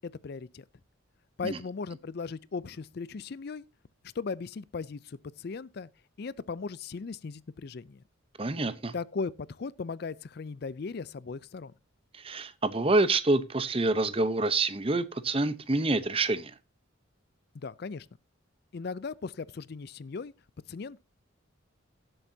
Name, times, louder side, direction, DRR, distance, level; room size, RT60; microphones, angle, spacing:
voice 1, 0.2-0.6 1.4-3.6 4.1-5.9 6.2-8.0 8.9-11.7 17.5-18.1 18.7-20.3 20.7-21.0, left 4 dB, 50° left, 0.4 m, -37 dB
voice 2, 8.4-8.9 12.1-16.5, right 2 dB, 30° right, 0.8 m, -27 dB
17.0 x 7.9 x 2.7 m
head